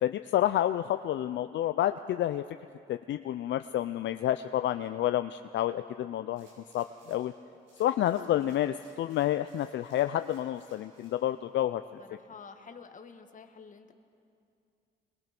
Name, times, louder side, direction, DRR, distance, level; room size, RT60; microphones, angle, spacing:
voice 1, 0.0-2.4 2.9-6.5 6.7-7.3 7.8-12.0, left 12 dB, 65° left, 9 dB, 0.5 m, -29 dB
sound 1, 6.4-7.3 7.6-11.2 11.7-11.8, right 2 dB, 75° right, 6.9 m, -64 dB
voice 2, 12.0-13.9, left 5 dB, 40° left, 6 dB, 1.7 m, -49 dB
26.5 x 21.5 x 6.0 m, 2.4 s
cardioid pair, 90°, 20 cm